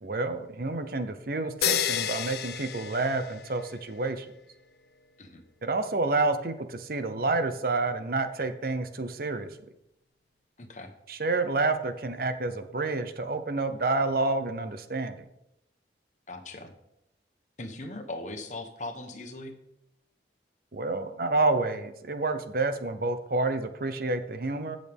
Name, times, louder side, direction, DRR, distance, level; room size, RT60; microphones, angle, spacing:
voice 1, 0.0-4.3 5.6-9.5 11.1-15.2 20.7-24.8, right 3 dB, 55° right, 9 dB, 0.8 m, -29 dB
sound 1, 1.6-3.8, left 9 dB, 60° left, 0.6 m, -30 dB
voice 2, 10.6-10.9 16.3-16.7 17.6-19.6, left 2 dB, 40° left, 6 dB, 1.1 m, -39 dB
16.5 x 6.4 x 3.6 m, 0.84 s
head